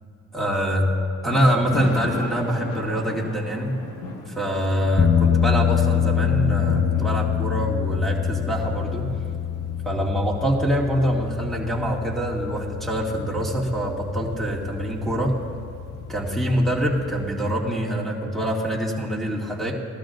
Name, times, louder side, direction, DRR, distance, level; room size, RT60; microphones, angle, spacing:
voice 1, 0.3-0.9 1.2-3.7 4.3-9.0 9.8-15.3 16.1-19.7, equal, ahead, -2 dB, 2.4 m, -24 dB
Thunder / Rain, 1.3-17.3, left 3 dB, 85° left, 1.6 m, -37 dB
sound 1, 5.0-17.3, left 9 dB, 25° left, 0.5 m, -26 dB
19.5 x 13.0 x 2.6 m, 2.7 s
cardioid pair, 90°, 30 cm